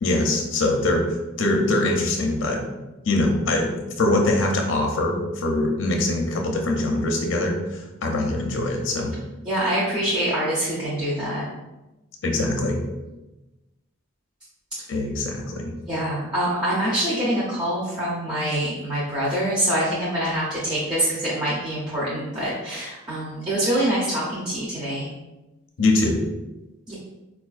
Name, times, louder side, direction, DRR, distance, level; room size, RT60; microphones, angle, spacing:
voice 1, 0.0-2.6 3.1-9.2 12.2-12.8 14.9-15.7 25.8-26.2, left 2 dB, 60° left, 2 dB, 0.5 m, -23 dB
voice 2, 9.5-11.4 15.9-25.1 26.9-27.0, right 1 dB, 20° right, -8 dB, 0.6 m, -25 dB
4.3 x 2.4 x 2.4 m, 1.0 s
head